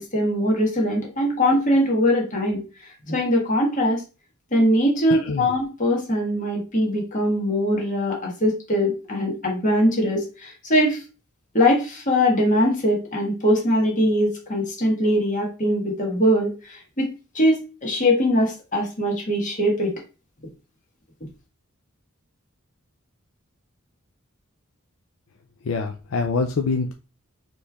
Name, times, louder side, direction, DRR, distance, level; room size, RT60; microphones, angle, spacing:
voice 1, 0.0-4.0 4.5-11.0 11.5-19.9, equal, 40° left, -1 dB, 1.6 m, -22 dB
voice 2, 5.1-5.5 25.6-26.9, left 4 dB, 70° left, 4 dB, 0.5 m, -25 dB
4.3 x 3.2 x 3.4 m, 0.31 s
head